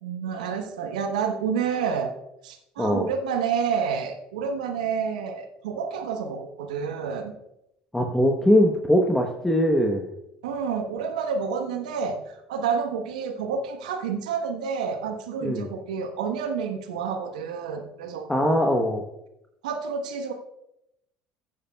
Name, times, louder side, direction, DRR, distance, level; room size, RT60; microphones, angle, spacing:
voice 1, 0.0-2.1 2.4-7.3 10.4-18.6 19.6-20.3, right 6 dB, 85° right, 5 dB, 1.1 m, -29 dB
voice 2, 2.8-3.1 7.9-10.1 15.4-15.7 18.3-19.0, equal, 10° left, 3 dB, 1.1 m, -21 dB
15.0 x 8.7 x 2.3 m, 0.85 s
hypercardioid pair, 70°, 4 cm